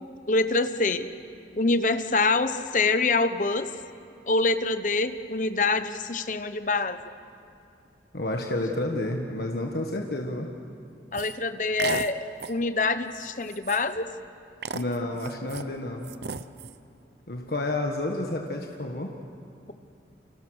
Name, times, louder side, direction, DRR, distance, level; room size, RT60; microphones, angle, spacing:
voice 1, 0.3-1.1 1.5-3.7 4.3-7.0 11.1-12.2 12.5-14.1, left 3 dB, 45° left, 10 dB, 1.0 m, -25 dB
voice 2, 8.1-10.5 14.7-16.1 17.3-19.1, left 1 dB, 60° left, 1 dB, 1.6 m, -30 dB
sound 1, 11.1-11.4 11.8-12.1 12.4-12.6 13.1-13.2 13.5-14.0 14.6-15.6 16.0-16.7, right 5 dB, 70° right, 0.8 m, -34 dB
30.0 x 26.0 x 6.5 m, 2.5 s
head